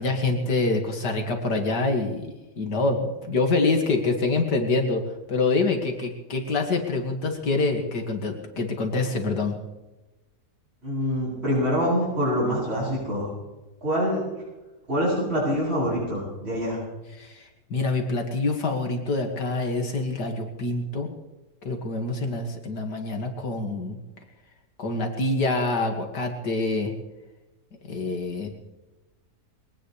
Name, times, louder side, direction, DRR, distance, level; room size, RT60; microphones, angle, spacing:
voice 1, 0.0-2.3 2.6-5.0 5.3-9.6 17.1-21.1 21.6-24.0 24.8-26.9 27.9-28.5, left 3 dB, 80° left, 3 dB, 2.6 m, -26 dB
voice 2, 10.8-13.3 13.8-14.2 14.9-16.8, equal, 35° right, -8 dB, 8.4 m, -25 dB
23.0 x 18.0 x 3.3 m, 1.1 s
omnidirectional pair, 1.8 m